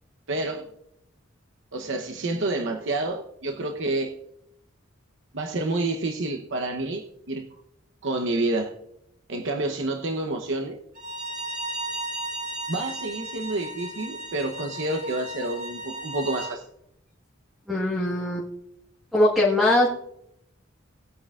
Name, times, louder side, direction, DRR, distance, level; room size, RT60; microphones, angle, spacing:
voice 1, 0.3-0.7 1.7-4.2 5.3-7.5 8.0-8.7 9.3-10.8 12.7-16.7, right 2 dB, 65° right, 3 dB, 1.0 m, -29 dB
Bowed string instrument, 11.0-16.5, right 2 dB, 40° right, 4.9 m, -35 dB
voice 2, 17.7-18.5 19.1-19.9, left 1 dB, ahead, -4 dB, 1.5 m, -21 dB
19.5 x 8.7 x 2.5 m, 0.79 s
head